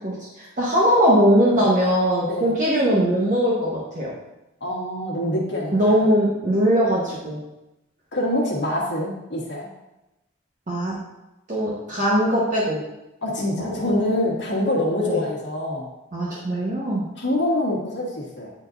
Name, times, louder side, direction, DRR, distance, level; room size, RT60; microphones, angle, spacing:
voice 1, 0.0-4.1 5.7-7.4 10.7-10.9 11.5-12.8 13.6-13.9 15.0-15.2 16.1-17.0, equal, 45° right, -6 dB, 1.2 m, -20 dB
voice 2, 4.6-6.0 8.1-9.7 13.2-15.9 17.2-18.5, left 1 dB, 70° left, -4 dB, 1.5 m, -25 dB
9.5 x 4.4 x 2.6 m, 0.95 s
head